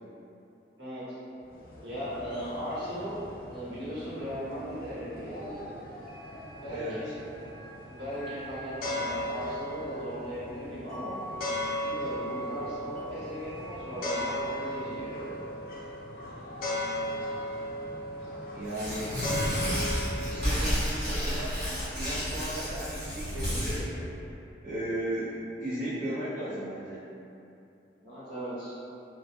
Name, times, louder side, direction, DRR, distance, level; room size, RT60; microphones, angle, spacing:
sound 1, 1.4-20.4, left 1 dB, 55° left, 0.4 m, -37 dB
voice 1, 1.8-5.7 6.6-7.2 7.9-11.2 11.8-15.5 28.0-28.8, equal, 80° right, -11 dB, 1.0 m, -38 dB
sound 2, 5.9-14.4, right 2 dB, ahead, 0.6 m, -46 dB
voice 2, 6.7-7.1 18.5-19.2 20.2-24.1 24.6-27.0, right 1 dB, 45° right, -13 dB, 0.5 m, -36 dB
Tearing, 18.6-23.8, equal, 65° right, 1.2 m, -31 dB
2.2 x 2.0 x 2.8 m, 2.7 s
head